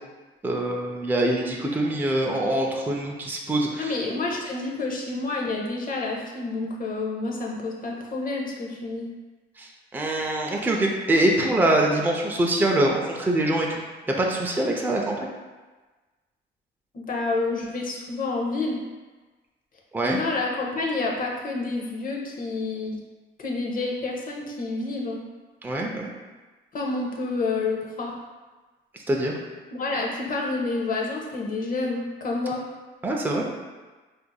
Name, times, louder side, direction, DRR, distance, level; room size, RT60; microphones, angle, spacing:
voice 1, 0.4-4.0 9.6-15.3 19.9-20.2 25.6-26.1 28.9-29.4 33.0-33.5, right 1 dB, 10° right, -1 dB, 0.4 m, -24 dB
voice 2, 3.8-9.1 16.9-18.8 20.0-23.0 23.4-25.2 26.7-28.1 29.7-32.6, left 3 dB, 45° left, -1 dB, 0.7 m, -29 dB
4.5 x 2.5 x 2.3 m, 1.3 s
cardioid pair, 90°, 20 cm